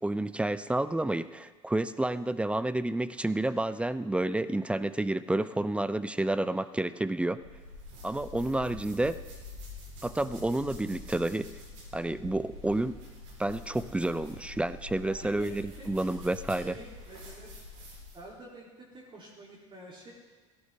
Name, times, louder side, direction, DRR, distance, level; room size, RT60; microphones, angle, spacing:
voice 1, 0.0-7.4 8.0-9.2 10.0-11.6 11.9-13.0 13.4-16.8, right 2 dB, 5° right, 15 dB, 0.5 m, -30 dB
sound 1, 7.3-18.3, left 2 dB, 70° right, 4.7 m, -46 dB
voice 2, 15.0-15.9 16.2-16.3 16.6-17.5 18.1-20.1, right 1 dB, 30° right, -4 dB, 3.5 m, -48 dB
16.5 x 14.0 x 3.7 m, 1.3 s
hypercardioid pair, 70°, 16 cm